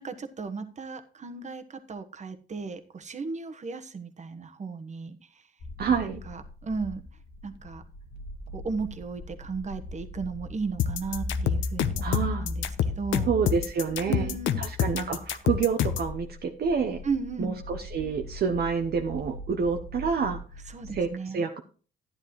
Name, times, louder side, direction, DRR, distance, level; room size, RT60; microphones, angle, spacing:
voice 1, 0.0-5.5 6.0-7.0 7.4-7.8 8.5-12.1 12.4-13.3 14.1-14.6 17.0-17.6 20.7-21.4, right 4 dB, 35° right, 8 dB, 1.2 m, -35 dB
sound 1, 5.6-21.0, left 1 dB, 60° left, 1.5 m, -39 dB
voice 2, 5.8-6.2 12.0-12.5 13.3-14.3 14.6-17.0 17.4-20.4 20.9-21.1 21.3-21.6, right 6 dB, 55° right, 4 dB, 0.9 m, -28 dB
sound 2, 10.8-16.1, left 9 dB, 80° left, 0.8 m, -27 dB
12.0 x 10.5 x 3.1 m, 0.39 s
cardioid pair, 90°, 20 cm